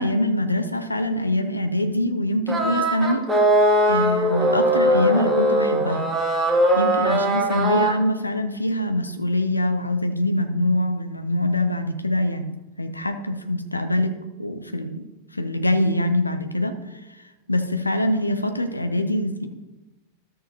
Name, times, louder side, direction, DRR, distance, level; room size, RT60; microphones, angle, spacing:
voice 1, 0.0-3.3 3.9-6.1 6.7-15.1 15.3-17.0 17.5-19.5, left 1 dB, 85° left, 8 dB, 0.7 m, -24 dB
sound 1, 2.5-7.9, right 1 dB, 10° right, 1.6 m, -20 dB
13.0 x 6.5 x 2.9 m, 1.1 s
figure-of-eight pair, 90°, 0 cm